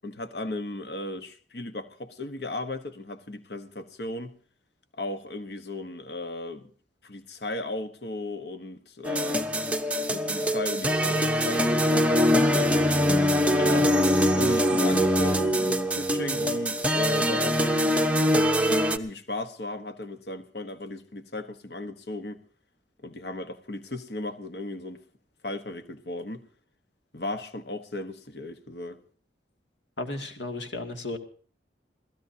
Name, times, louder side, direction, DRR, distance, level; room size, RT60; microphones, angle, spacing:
voice 1, 0.0-4.4 5.0-6.7 7.0-9.5 10.1-12.8 14.3-18.0 18.9-22.4 23.0-25.0 25.4-26.5 27.1-29.0, left 1 dB, 60° left, 1.1 m, -36 dB
sound 1, 9.0-19.0, equal, 5° right, 0.8 m, -23 dB
voice 2, 13.5-13.8 30.0-31.2, left 2 dB, 75° left, 2.2 m, -33 dB
27.5 x 16.5 x 2.8 m
head